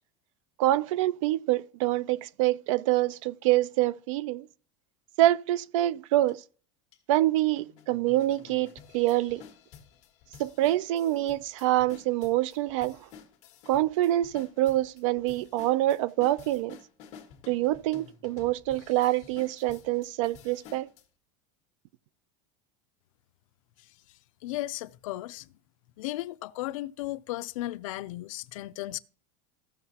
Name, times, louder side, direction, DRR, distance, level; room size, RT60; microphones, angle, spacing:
voice 1, 0.6-4.5 5.2-6.4 7.1-9.4 10.4-13.0 13.7-16.8 17.5-20.9, right 15 dB, 75° right, 0.5 m, -26 dB
sound 1, 6.3-6.4 6.9-7.0 7.6-21.0, left 7 dB, 40° left, 1.5 m, -52 dB
voice 2, 24.4-25.5 26.0-29.0, left 16 dB, 90° left, 0.5 m, -35 dB
15.5 x 6.5 x 2.8 m
supercardioid pair, 165°, 17 cm